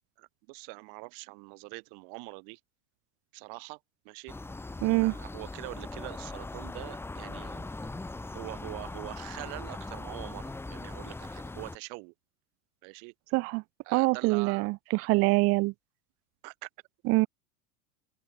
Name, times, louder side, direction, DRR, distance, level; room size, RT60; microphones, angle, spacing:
voice 1, 0.2-2.6 3.3-3.8 4.1-4.3 4.8-7.7 8.3-12.1 12.8-13.1 13.9-14.7 16.4-16.7, right 40 dB or more, 55° right, 3.7 m, -44 dB
sound 1, 4.3-11.8, left 2 dB, 5° left, 0.9 m, -40 dB
voice 2, 4.8-5.1 13.3-13.6 13.9-15.7 17.1-17.3, right 24 dB, 35° right, 0.5 m, -25 dB
open air
hypercardioid pair, 95°, 43 cm